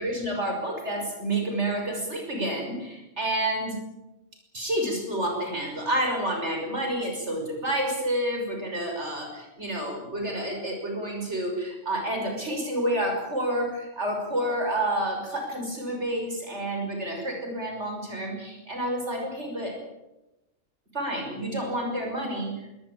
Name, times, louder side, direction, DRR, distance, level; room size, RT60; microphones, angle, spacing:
voice 1, 0.0-3.8 4.5-19.7 20.9-22.5, right 1 dB, 55° right, 2 dB, 6.3 m, -29 dB
22.5 x 19.5 x 8.7 m, 0.97 s
omnidirectional pair, 1.4 m